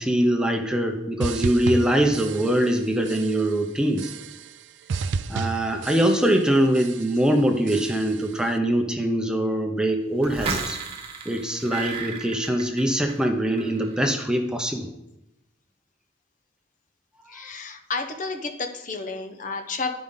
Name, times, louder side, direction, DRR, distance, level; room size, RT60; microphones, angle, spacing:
voice 1, 0.0-4.1 5.3-10.8 11.3-14.9 17.4-17.5, right 1 dB, 5° right, 4 dB, 0.7 m, -23 dB
sound 1, 1.2-2.8 3.1-3.6 4.0-4.6 4.9-6.5 6.7-7.3 7.7-8.3, right 5 dB, 80° right, 0.4 m, -32 dB
sound 2, 10.2-13.3 13.6-14.0, right 5 dB, 35° right, 1.1 m, -33 dB
voice 2, 17.3-20.0, left 4 dB, 45° left, 6 dB, 0.8 m, -31 dB
11.5 x 5.2 x 3.6 m, 0.89 s
head